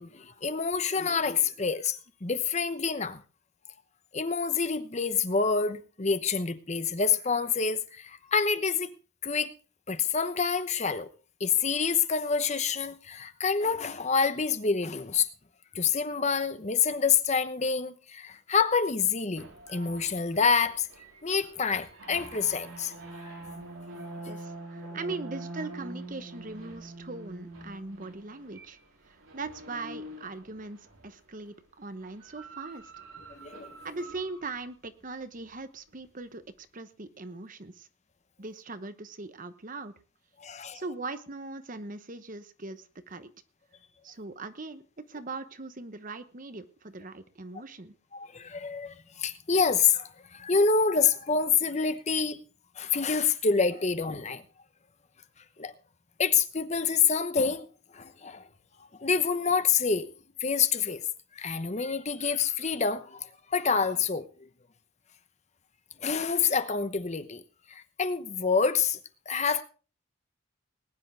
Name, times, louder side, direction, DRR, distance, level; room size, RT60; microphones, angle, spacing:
voice 1, 0.0-3.2 4.1-8.9 9.2-9.5 9.9-11.1 11.4-15.3 15.7-20.9 21.2-22.9 23.2-23.3 24.9-25.0 33.4-33.8 40.4-40.8 48.1-52.4 52.8-54.4 55.6-55.7 56.2-57.6 57.9-58.5 59.0-60.1 60.4-61.0 61.4-64.3 66.0-67.4 67.7-69.0 69.3-69.6, left 5 dB, 35° left, 0.9 m, -27 dB
sound 1, 19.4-31.2 32.0-34.7, right 2 dB, 85° right, 3.9 m, -45 dB
voice 2, 24.3-28.8 29.1-32.9 33.8-37.9 38.4-39.9 40.7-43.3 44.0-47.9, right 3 dB, 40° right, 1.0 m, -40 dB
20.0 x 10.5 x 3.4 m
head